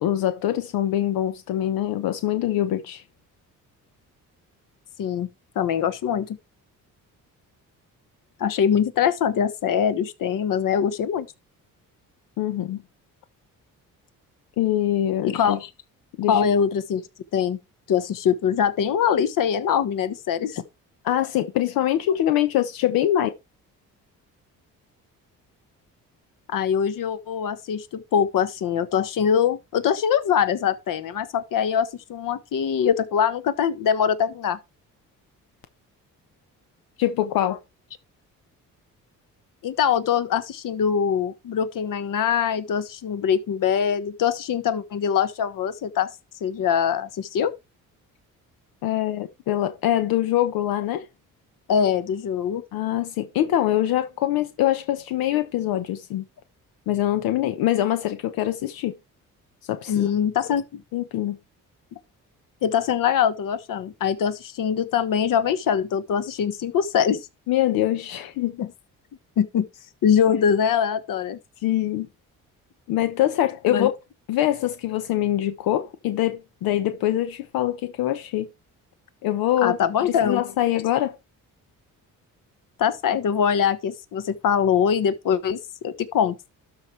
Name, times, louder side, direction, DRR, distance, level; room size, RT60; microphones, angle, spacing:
voice 1, 0.0-3.0 12.4-12.8 14.6-15.6 16.2-16.4 21.0-23.3 37.0-37.6 48.8-51.1 52.7-56.2 56.9-58.9 59.7-60.1 60.9-61.4 67.5-68.6 71.6-72.1 72.9-74.0 74.3-78.5 79.2-79.8 80.0-81.2, left 12 dB, 90° left, 0.9 m, -24 dB
voice 2, 5.5-6.4 8.4-11.3 15.2-15.7 16.3-17.0 17.3-17.6 17.9-20.6 26.5-34.6 39.6-46.1 46.4-47.5 51.7-52.6 59.9-60.8 62.6-67.3 68.6-68.7 69.4-69.7 70.0-71.4 73.7-73.9 79.6-80.4 82.8-86.3, left 8 dB, 65° left, 1.2 m, -23 dB
12.5 x 4.8 x 4.5 m
cardioid pair, 85°, 34 cm